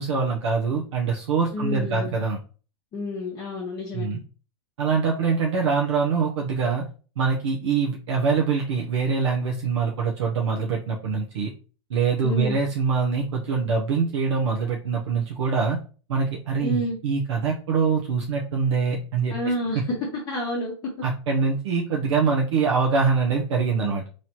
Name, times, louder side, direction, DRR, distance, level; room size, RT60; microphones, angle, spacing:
voice 1, 0.0-2.4 3.9-4.2 4.8-6.8 7.2-11.5 11.9-15.8 16.1-19.3 21.0-24.1, right 5 dB, 80° right, -1 dB, 0.8 m, -24 dB
voice 2, 1.5-2.2 2.9-4.1 12.2-12.6 16.6-17.0 19.3-19.8 20.3-20.7 23.8-24.0, left 1 dB, 25° left, -2 dB, 0.9 m, -29 dB
4.1 x 3.1 x 2.9 m, 0.38 s
supercardioid pair, 155°, 14 cm